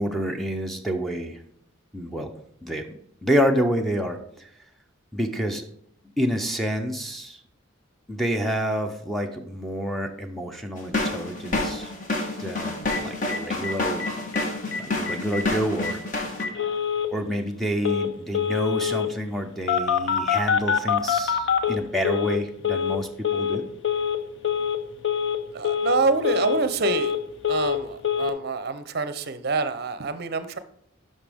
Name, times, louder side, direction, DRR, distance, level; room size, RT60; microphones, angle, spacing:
voice 1, 0.0-1.4 1.9-2.3 2.6-2.9 3.2-4.5 5.1-5.6 6.2-7.4 8.1-11.9 12.4-14.0 14.8-16.0 17.1-23.6, equal, ahead, 5 dB, 0.5 m, -28 dB
sound 1, 10.8-16.4, left 2 dB, 40° left, 1.3 m, -28 dB
Telephone, 12.9-13.0 13.3-13.4 13.6-13.7 14.0-14.4 14.7-14.8 15.1-15.4 15.8-15.9 16.4-17.1 17.8-18.1 18.3-19.1 19.7-22.4 22.6-23.0 23.2-23.6 23.8-24.2 24.4-24.8 25.0-25.4 25.6-26.0 26.2-27.2 27.4-27.8 28.0-28.3, left 7 dB, 60° left, 0.7 m, -25 dB
voice 2, 25.5-27.1 27.5-30.6, right 4 dB, 50° right, 12 dB, 0.6 m, -26 dB
11.0 x 5.4 x 3.5 m, 0.70 s
head